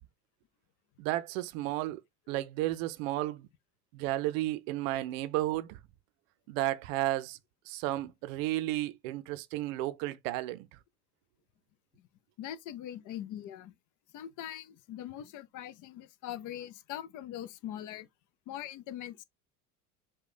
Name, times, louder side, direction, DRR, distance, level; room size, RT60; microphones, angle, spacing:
voice 1, 1.0-2.0 2.3-3.5 3.9-5.8 6.5-7.4 7.7-10.7, right 16 dB, 60° right, 0.6 m, -33 dB
voice 2, 12.4-13.7 14.1-18.1 18.5-19.2, left 11 dB, 45° left, 0.6 m, -42 dB
4.9 x 2.3 x 4.0 m
hypercardioid pair, 70°, 44 cm